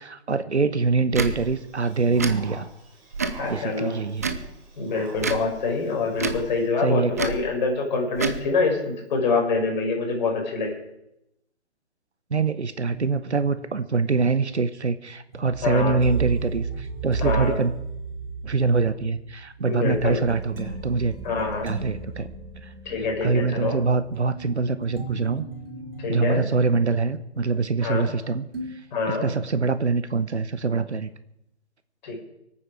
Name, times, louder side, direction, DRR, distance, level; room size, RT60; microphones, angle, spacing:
voice 1, 0.0-2.7 3.5-4.3 6.8-7.1 12.3-17.7 18.4-21.2 21.6-22.3 22.6-22.7 23.2-25.4 26.1-28.8 29.1-31.1, right 4 dB, 80° right, 12 dB, 1.1 m, -24 dB
Tick / Tick-tock, 1.1-1.3 2.1-2.4 3.1-3.4 4.2-4.5 5.2-5.4 6.1-6.4 7.1-7.4 8.1-8.4, right 4 dB, 15° right, 0.4 m, -27 dB
sound 1, 1.2-6.7, right 3 dB, 30° right, 6.1 m, -46 dB
voice 2, 3.4-4.0 4.8-10.7 15.6-16.0 17.2-17.6 19.7-20.2 21.2-21.7 22.9-23.8 26.0-26.5 27.8-28.1 28.9-29.3 32.0-32.2, left 4 dB, 40° left, 0 dB, 5.4 m, -25 dB
sound 2, 12.9-28.2 28.5-28.7, right 4 dB, 55° right, 4.0 m, -35 dB
23.5 x 9.0 x 4.9 m, 0.83 s
figure-of-eight pair, 135°, 34 cm